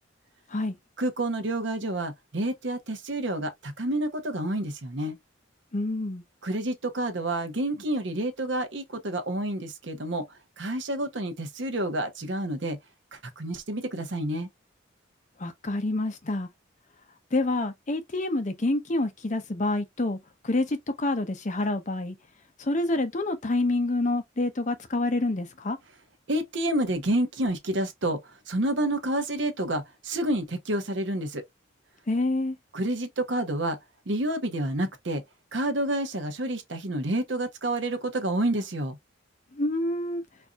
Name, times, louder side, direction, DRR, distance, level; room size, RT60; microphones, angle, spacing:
voice 1, 1.0-5.2 6.4-10.3 10.6-12.8 13.1-14.5 26.3-31.4 32.7-33.8 34.1-35.2 35.5-39.0, right 1 dB, 60° right, 0.9 m, -29 dB
voice 2, 5.7-6.2 15.4-16.5 17.3-20.2 20.4-22.2 22.6-25.8 32.1-32.6 39.5-40.2, left 2 dB, 35° left, 0.6 m, -27 dB
4.4 x 2.6 x 2.4 m
head